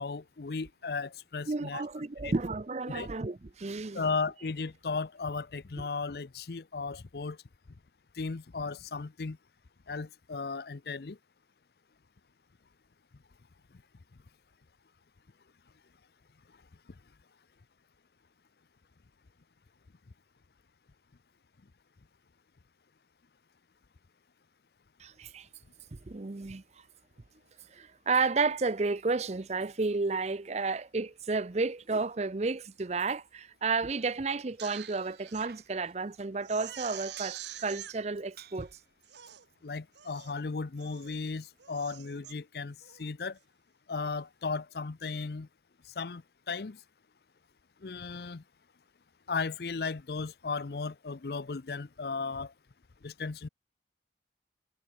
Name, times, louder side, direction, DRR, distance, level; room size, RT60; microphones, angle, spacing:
voice 1, 0.0-1.8 2.2-2.3 2.9-3.1 3.9-7.4 8.2-9.4 9.9-11.2 39.6-43.4 43.9-45.5 46.0-46.2 46.5-46.8 47.8-48.4 49.3-52.5 53.0-53.5, left 4 dB, 60° left, 0.6 m, -35 dB
voice 2, 1.5-4.0 25.0-25.5 26.1-26.6 27.7-38.7, right 4 dB, 40° right, 0.6 m, -32 dB
Bicycle, 33.6-42.0, right 8 dB, 60° right, 6.0 m, -60 dB
Crying sobbing, 34.4-35.5 35.9-36.0 36.4-37.9 38.6-38.7 39.0-39.5 40.0-40.4 40.8-41.2 41.6-42.3 42.8-43.1, right 12 dB, 80° right, 1.3 m, -45 dB
head